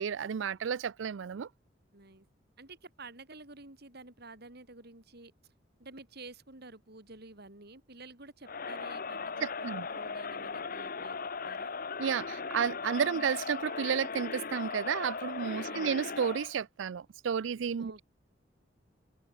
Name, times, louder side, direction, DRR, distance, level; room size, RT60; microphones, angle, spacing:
voice 1, 0.0-1.5 9.4-9.9 12.0-18.0, right 7 dB, 85° right, 0.4 m, -32 dB
voice 2, 1.9-2.3 2.6-5.3 5.8-11.2 11.4-11.8 13.0-13.3 15.6-16.0 17.8-18.0, right 3 dB, 60° right, 4.5 m, -50 dB
Crowd, 8.4-16.6, left 5 dB, 50° left, 1.3 m, -38 dB
open air
head